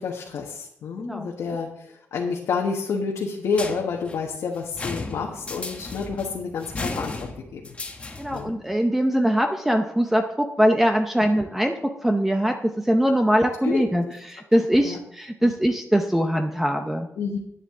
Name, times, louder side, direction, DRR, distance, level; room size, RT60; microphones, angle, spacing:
voice 1, 0.0-7.7 8.3-8.6 11.1-11.2 13.6-13.8 14.8-15.0 15.4-15.6 17.2-17.4, left 5 dB, 80° left, -1 dB, 1.4 m, -29 dB
voice 2, 1.0-1.3 8.2-17.1, equal, 5° right, 4 dB, 0.6 m, -22 dB
sound 1, 3.5-8.5, left 3 dB, 25° left, 1.1 m, -35 dB
10.5 x 9.8 x 3.7 m, 0.75 s
wide cardioid pair, 165°, 5 cm